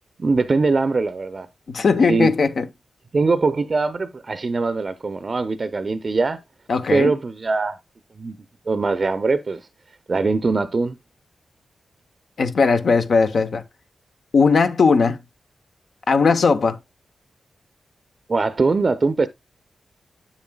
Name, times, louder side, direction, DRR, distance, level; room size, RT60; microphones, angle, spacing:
voice 1, 0.2-1.5 2.1-2.3 3.1-6.4 6.9-7.8 8.2-8.4 8.7-9.6 10.1-11.0 18.3-19.3, right 3 dB, 50° right, 0.5 m, -21 dB
voice 2, 1.7-2.7 6.7-7.1 12.4-13.6 14.3-15.2 16.1-16.8, left 4 dB, 70° left, 0.8 m, -18 dB
8.9 x 7.2 x 2.3 m
cardioid pair, 45°, 0 cm